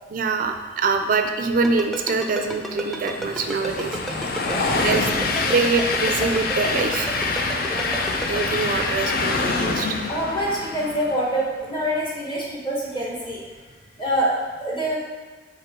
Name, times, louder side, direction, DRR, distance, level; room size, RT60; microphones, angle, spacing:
voice 1, 0.1-4.2 4.8-5.1 5.4-7.2 8.3-10.0, right 4 dB, 50° right, 6 dB, 0.4 m, -24 dB
Ringtone, 1.6-8.4, right 2 dB, ahead, 0.6 m, -31 dB
Train, 2.0-11.4, left 3 dB, 55° left, 0.5 m, -26 dB
voice 2, 4.4-4.8 7.7-7.9 10.1-13.4 14.0-15.0, right 1 dB, 25° left, -4 dB, 1.5 m, -26 dB
6.7 x 3.8 x 4.5 m, 1.4 s
head